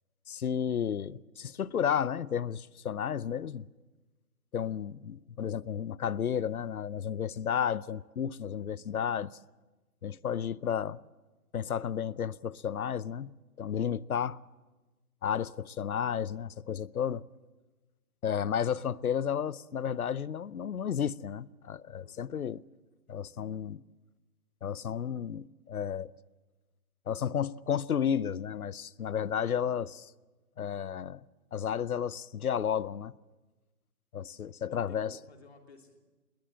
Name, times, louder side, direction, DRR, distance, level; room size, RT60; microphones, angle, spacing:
voice 1, 0.3-3.7 4.5-9.3 10.0-11.0 11.5-13.3 13.6-14.4 15.2-17.2 18.2-22.6 23.1-23.8 24.6-26.1 27.1-30.1 30.6-31.2 31.5-33.1 34.1-35.2, left 8 dB, 70° left, 0.7 m, -32 dB
voice 2, 22.0-22.5 34.6-36.0, left 3 dB, 45° left, 3.2 m, -56 dB
21.0 x 18.5 x 7.8 m
hypercardioid pair, 175°, 45 cm